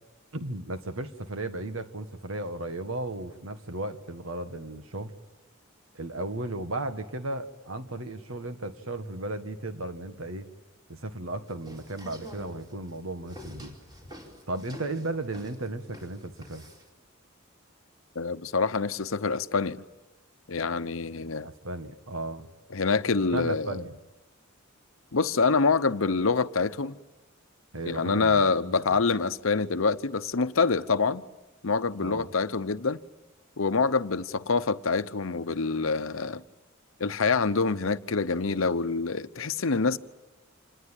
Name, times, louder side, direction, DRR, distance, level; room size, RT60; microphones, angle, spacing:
voice 1, 0.3-5.1 5.9-10.5 10.9-13.7 14.5-16.7 21.4-22.5 23.3-23.9 27.7-29.0 32.0-32.3, right 2 dB, 75° right, 1.7 m, -35 dB
sound 1, 11.5-16.9, equal, 20° right, 4.3 m, -47 dB
voice 2, 18.1-19.8 20.5-21.5 22.7-23.8 25.1-27.0 27.8-31.2 31.6-33.0 33.6-36.4 37.0-40.0, left 4 dB, 70° left, 0.9 m, -26 dB
27.0 x 20.0 x 9.1 m
head